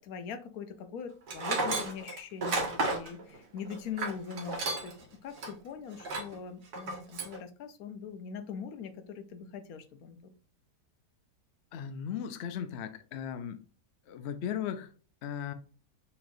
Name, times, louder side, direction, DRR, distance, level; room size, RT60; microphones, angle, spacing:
voice 1, 0.0-4.9 5.2-10.3, left 6 dB, 65° left, 1.0 m, -42 dB
Tools, 1.3-5.0 5.4-5.5 6.0-6.4 6.7-7.4, right 2 dB, 65° right, 1.6 m, -32 dB
voice 2, 11.7-13.6 14.1-14.9 15.2-15.5, left 8 dB, 85° left, 0.5 m, -37 dB
6.9 x 2.9 x 2.6 m
omnidirectional pair, 1.8 m